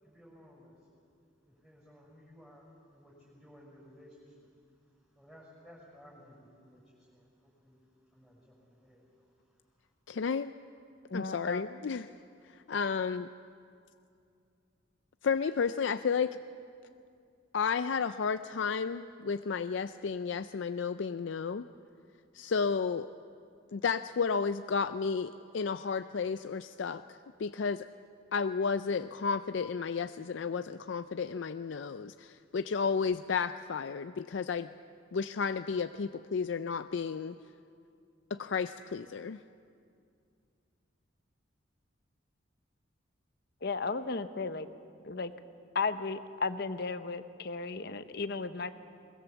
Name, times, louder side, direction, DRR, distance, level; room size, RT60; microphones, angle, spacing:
voice 1, 0.0-0.8 1.5-4.5 5.1-7.8 8.1-9.6, equal, ahead, -6 dB, 6.1 m, -57 dB
voice 2, 10.1-10.5 11.1-12.1 12.7-13.3 15.2-16.4 17.5-21.7 22.3-23.1 23.7-27.9 28.3-34.7 35.1-37.4 38.3-39.4, left 5 dB, 70° left, 11 dB, 0.4 m, -32 dB
voice 3, 11.1-11.6 43.6-44.7 45.0-45.3 45.7-48.7, left 4 dB, 55° left, 10 dB, 0.9 m, -34 dB
23.0 x 21.5 x 7.2 m, 2.5 s
head